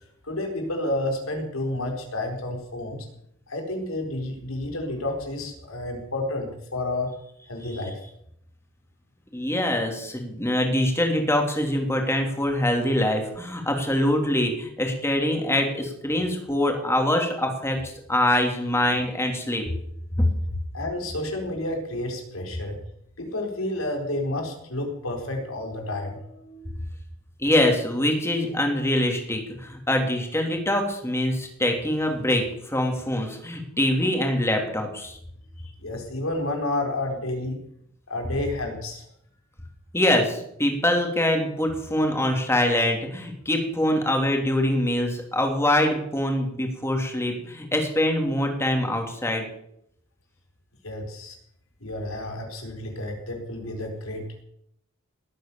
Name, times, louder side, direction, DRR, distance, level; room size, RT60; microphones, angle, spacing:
voice 1, 0.2-3.1 3.5-7.1 7.5-8.0 20.7-22.8 23.2-26.7 35.8-37.6 38.1-39.0 50.8-51.3 51.8-54.3, left 1 dB, 90° left, 3 dB, 4.4 m, -30 dB
voice 2, 9.3-19.6 27.4-35.2 39.9-49.4, left 1 dB, 15° left, 3 dB, 3.2 m, -24 dB
19.0 x 9.3 x 7.0 m, 0.73 s
head